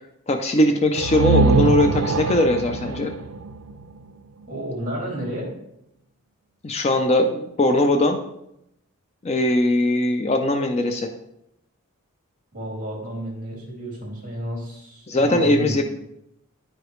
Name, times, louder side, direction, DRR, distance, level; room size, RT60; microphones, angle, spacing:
voice 1, 0.3-3.1 6.6-8.2 9.2-11.1 15.1-15.8, left 1 dB, 30° left, 6 dB, 0.4 m, -20 dB
sound 1, 0.9-4.7, right 3 dB, 75° right, 0.4 m, -23 dB
voice 2, 4.5-5.5 12.5-15.8, equal, 40° right, -2 dB, 2.5 m, -31 dB
10.0 x 4.8 x 3.1 m, 0.81 s
head